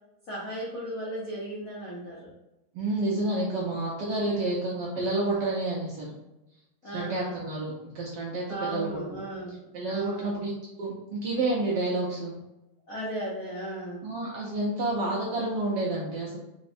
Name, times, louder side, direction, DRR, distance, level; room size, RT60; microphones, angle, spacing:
voice 1, 0.3-2.3 4.2-4.5 5.3-5.5 6.8-7.4 8.5-9.6 9.9-10.4 12.9-14.1, right 1 dB, 75° left, -6 dB, 0.7 m, -36 dB
voice 2, 2.7-6.1 6.8-9.0 9.7-10.5 10.8-12.3 14.0-16.4, right 2 dB, 75° right, -4 dB, 1.0 m, -29 dB
4.4 x 2.0 x 2.5 m, 0.95 s
omnidirectional pair, 2.4 m